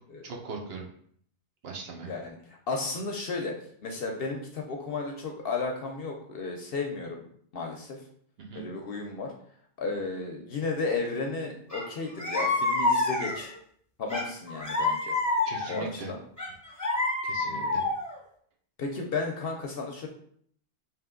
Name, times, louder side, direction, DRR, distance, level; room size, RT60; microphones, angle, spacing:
voice 1, 0.2-0.8 1.6-2.1 8.5-8.6 15.4-16.1 17.2-17.8, right 4 dB, 65° right, 1 dB, 0.9 m, -39 dB
voice 2, 2.1-3.6 3.8-7.2 7.5-8.0 8.5-9.3 9.8-13.5 14.0-15.1 15.7-16.2 17.4-17.9 18.8-20.1, left 3 dB, 65° left, 2 dB, 0.7 m, -33 dB
sound 1, 11.7-11.8 12.2-13.5 14.1-15.9 16.4-18.1, left 2 dB, 15° left, 0.8 m, -28 dB
3.4 x 2.9 x 3.7 m, 0.62 s
omnidirectional pair, 1.2 m